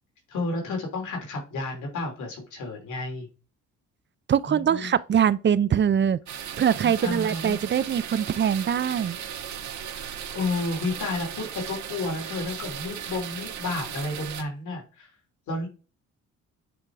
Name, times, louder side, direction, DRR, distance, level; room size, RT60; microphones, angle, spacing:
voice 1, 0.3-3.3 4.4-4.9 6.8-7.6 9.9-15.1 15.5-15.7, left 2 dB, 75° left, 3.1 m, -31 dB
voice 2, 4.3-6.2 6.6-9.2, right 8 dB, 40° right, 0.5 m, -23 dB
sound 1, 6.3-14.4, right 9 dB, 70° right, 1.3 m, -36 dB
9.1 x 3.6 x 4.8 m
cardioid pair, 90°, 30 cm